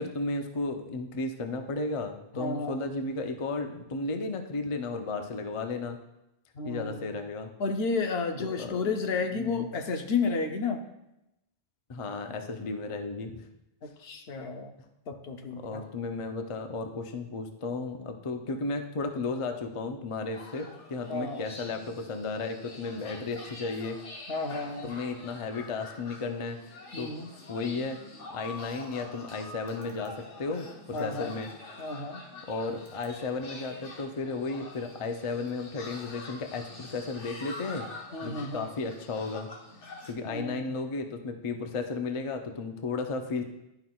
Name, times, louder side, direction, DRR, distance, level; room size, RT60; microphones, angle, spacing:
voice 1, 0.0-6.0 6.6-7.5 8.4-8.9 9.3-9.7 11.9-13.4 15.6-24.0 24.8-27.1 27.5-28.0 28.3-31.5 32.5-37.9 38.2-39.5 40.1-43.4, left 3 dB, 40° left, 5 dB, 0.5 m, -34 dB
voice 2, 2.3-2.8 6.5-7.1 7.6-10.8 13.8-14.7 15.1-15.8 21.1-21.5 24.3-24.9 26.9-27.3 30.9-31.3 31.8-32.2 38.1-38.7 40.2-40.6, left 4 dB, 65° left, 5 dB, 0.9 m, -32 dB
sound 1, 20.3-40.1, left 2 dB, 90° left, 1.4 m, -46 dB
11.0 x 5.7 x 2.3 m, 0.88 s
omnidirectional pair, 1.2 m